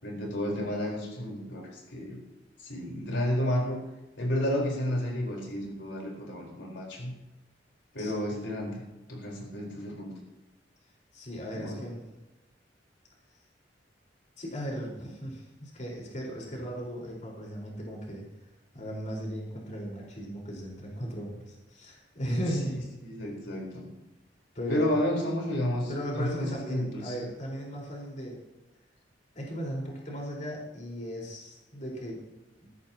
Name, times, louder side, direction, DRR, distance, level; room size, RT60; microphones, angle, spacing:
voice 1, 0.0-2.2 2.6-3.8 4.2-7.1 7.9-8.8 9.1-10.2 11.5-11.8 23.0-23.9 24.7-27.1, left 1 dB, 85° left, -1 dB, 4.5 m, -31 dB
voice 2, 8.0-8.4 11.1-12.0 14.4-18.2 18.7-22.8 24.5-24.9 25.9-28.4 29.3-32.2 32.6-32.7, equal, 45° left, -2 dB, 4.8 m, -36 dB
20.0 x 14.5 x 3.0 m, 1.0 s
head